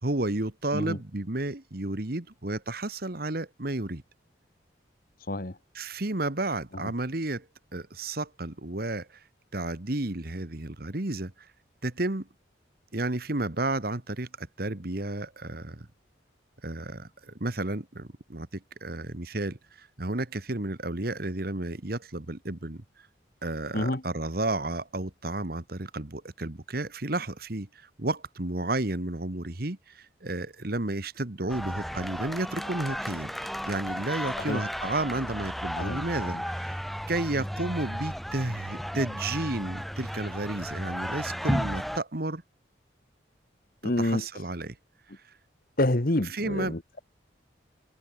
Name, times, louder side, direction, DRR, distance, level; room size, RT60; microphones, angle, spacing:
voice 1, 0.0-4.0 5.7-7.4 7.7-9.2 9.5-11.5 11.8-12.3 12.9-15.9 16.6-22.8 23.4-33.3 33.6-36.8 37.1-42.4 44.0-44.8 46.3-46.7, right 2 dB, 50° right, 1.5 m, -32 dB
sound 1, 31.5-42.0, equal, ahead, 5.2 m, -34 dB
voice 2, 43.8-44.2 45.8-47.0, left 1 dB, 50° left, 1.4 m, -27 dB
head